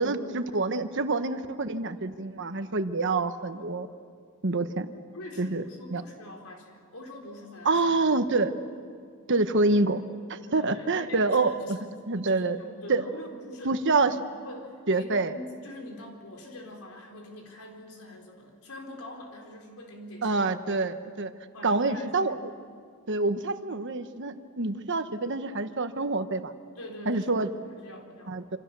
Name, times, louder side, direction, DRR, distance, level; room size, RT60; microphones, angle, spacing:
voice 1, 0.0-3.9 4.4-4.9 5.4-5.6 5.9-6.0 7.6-8.5 9.3-10.0 10.3-11.8 12.1-12.6 12.9-13.0 13.6-14.1 14.9-15.3 20.2-21.3 21.6-22.4 23.1-26.5 27.1-27.5 28.3-28.6, right 3 dB, 55° right, 9 dB, 1.2 m, -26 dB
voice 2, 5.1-7.9 10.5-11.8 12.3-13.8 14.1-20.4 21.5-22.3 26.8-28.4, left 1 dB, 80° left, 1 dB, 4.3 m, -44 dB
27.0 x 27.0 x 6.9 m, 2.2 s
head